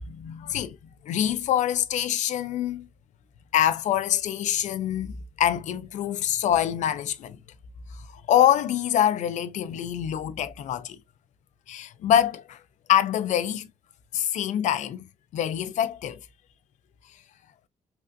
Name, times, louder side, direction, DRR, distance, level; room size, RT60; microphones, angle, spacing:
voice 1, 0.1-0.8 1.0-2.9 3.5-7.4 8.3-11.0 11.7-12.6 12.9-13.7 14.1-15.0 15.3-16.2, left 11 dB, 75° left, 0.4 m, -25 dB
3.3 x 2.6 x 2.4 m
wide cardioid pair, 180°, 13 cm